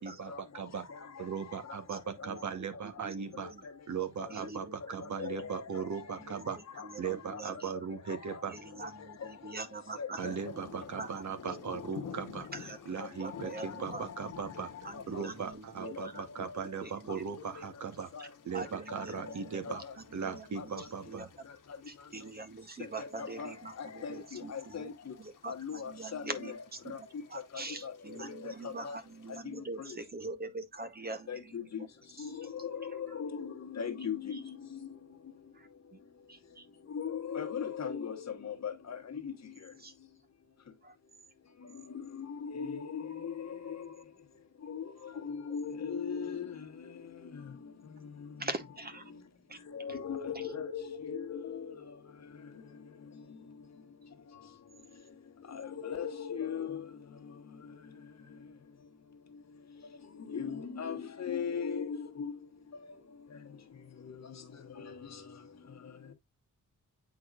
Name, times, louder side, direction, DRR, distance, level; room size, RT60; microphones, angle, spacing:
voice 1, 0.0-3.5 3.9-6.6 7.0-8.5 10.1-14.7 15.1-19.8 20.1-21.3, right 6 dB, 65° right, 1.1 m, -38 dB
voice 2, 0.9-1.3 1.6-1.8 2.2-2.4 3.4-3.7 4.2-4.5 4.8-6.1 6.8-7.4 8.1-8.4 9.2-9.3 10.0-10.3 11.5-11.9 13.0-13.8 14.1-14.2 14.9-15.5 15.8-16.7 17.6-17.7 18.1-18.3 18.6-19.4 19.6-19.9 20.6-20.9 23.0-25.1 25.5-26.6 26.9-27.0 27.5-27.9 28.2-29.0 29.4-30.0 31.3-31.9 32.2-34.8 36.9-39.3 42.1-43.9 44.7-44.9 45.2-46.5 49.7-52.0 55.5-56.8 60.3-62.3 62.7-63.0 64.0-64.1 64.8-64.9, left 6 dB, 55° left, 1.2 m, -39 dB
voice 3, 1.9-2.7 3.0-3.6 4.3-5.3 6.3-6.5 6.8-7.7 8.5-11.2 12.5-12.8 13.2-14.0 14.8-16.5 16.8-17.2 18.5-19.8 20.2-20.7 21.1-21.3 21.9-24.9 25.2-26.5 26.8-31.6 32.2-32.3 34.3-34.4 35.5-36.0 36.3-36.7 39.8-39.9 40.8-41.0 45.1-45.2 48.4-49.1 49.5-49.6 49.9-50.0 50.3-50.4, right 3 dB, 30° right, 0.8 m, -44 dB
sound 1, 10.2-29.4, left 7 dB, 80° left, 1.1 m, -53 dB
8.3 x 4.7 x 2.4 m
wide cardioid pair, 145°, 32 cm